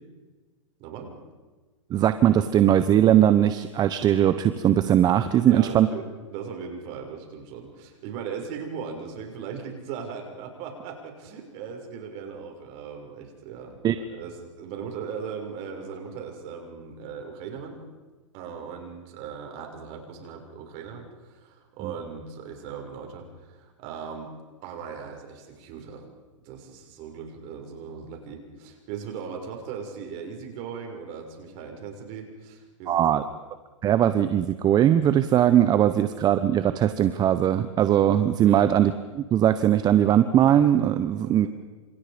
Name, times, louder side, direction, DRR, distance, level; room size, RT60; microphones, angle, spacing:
voice 1, 0.8-1.1 5.4-6.0 6.3-17.8 18.3-24.3 24.6-26.1 26.4-33.3 38.4-38.6 41.2-41.3, right 6 dB, 40° right, 3 dB, 6.4 m, -38 dB
voice 2, 1.9-5.9 13.8-13.9 32.9-33.2 33.8-41.5, right 11 dB, 25° right, 11 dB, 1.1 m, -20 dB
29.5 x 27.0 x 5.3 m, 1.3 s
hypercardioid pair, 125°, 16 cm